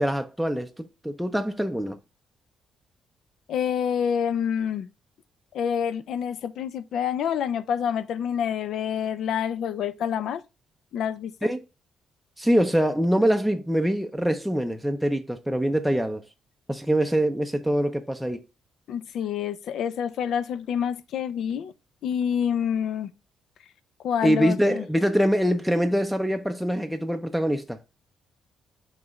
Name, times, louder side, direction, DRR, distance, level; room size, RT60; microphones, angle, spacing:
voice 1, 0.0-2.0 11.4-11.6 12.4-16.2 16.7-18.4 24.2-27.8, equal, ahead, 0.5 m, -24 dB
voice 2, 3.5-4.9 5.5-10.4 10.9-11.5 18.9-21.7 22.0-23.1 24.0-24.8, left 8 dB, 75° left, 0.5 m, -27 dB
5.9 x 3.3 x 5.1 m
cardioid pair, 90°, 0 cm